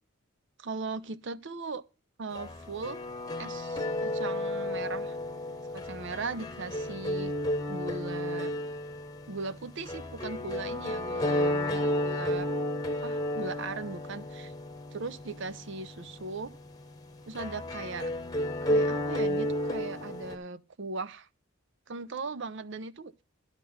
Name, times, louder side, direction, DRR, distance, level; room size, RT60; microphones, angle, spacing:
voice 1, 0.6-1.8 2.2-3.0 3.4-5.2 5.7-7.3 7.7-8.5 9.3-12.5 13.0-14.5 14.9-16.6 17.3-18.1 18.6-21.3 21.9-23.2, right 3 dB, 55° right, 0.6 m, -38 dB
sound 1, 2.3-20.4, left 1 dB, 20° left, 1.0 m, -32 dB
11.5 x 6.0 x 5.4 m
head